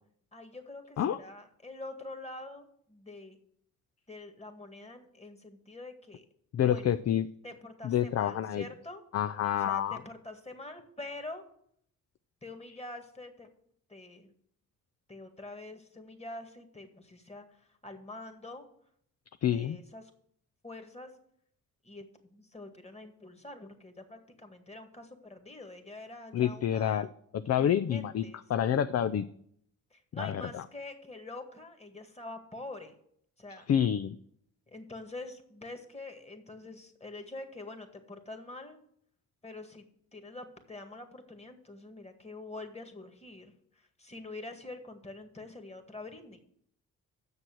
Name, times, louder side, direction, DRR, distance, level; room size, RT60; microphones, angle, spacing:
voice 1, 0.3-3.4 4.1-6.3 6.6-6.9 7.4-9.0 9.4-11.4 12.4-13.5 13.9-14.3 15.1-18.6 19.4-20.0 20.6-21.1 21.8-27.1 27.6-28.7 29.9-32.9 33.4-33.7 34.7-38.8 39.4-39.9 40.1-46.4, left 2 dB, 15° left, 6 dB, 1.9 m, -45 dB
voice 2, 6.5-7.3 7.8-8.6 9.1-10.0 19.4-19.8 26.3-27.1 27.3-28.2 28.5-29.3 30.1-30.6 33.7-34.2, left 10 dB, 45° left, 11 dB, 0.5 m, -28 dB
7.3 x 6.4 x 7.6 m, 0.67 s
supercardioid pair, 50°, 36 cm